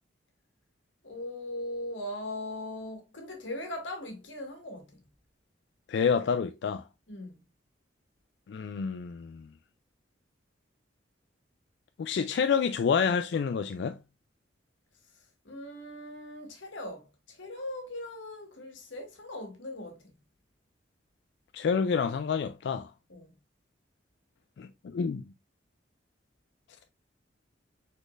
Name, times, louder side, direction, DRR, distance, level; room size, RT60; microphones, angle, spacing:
voice 1, 1.0-5.0 7.1-7.4 15.4-20.1 23.1-23.3, left 1 dB, 90° left, 1.6 m, -39 dB
voice 2, 5.9-6.8 8.5-9.5 12.0-14.0 21.5-22.9 24.6-25.2, left 6 dB, 65° left, 0.3 m, -28 dB
5.0 x 4.1 x 2.5 m
head